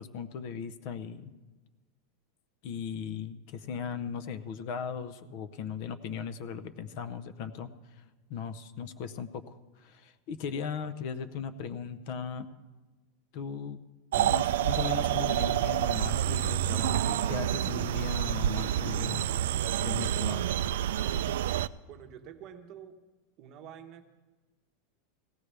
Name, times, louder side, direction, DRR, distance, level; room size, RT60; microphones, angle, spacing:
voice 1, 0.0-1.3 2.6-8.0 8.3-12.5 13.3-13.8 14.2-19.3 19.8-20.5, left 6 dB, 45° left, 13 dB, 0.6 m, -38 dB
sound 1, 14.1-21.7, right 11 dB, 75° right, 0.3 m, -28 dB
voice 2, 21.9-23.0 23.4-24.0, right 9 dB, 35° right, 6 dB, 0.9 m, -47 dB
17.5 x 15.5 x 3.3 m, 1.2 s
supercardioid pair, 165°, 0 cm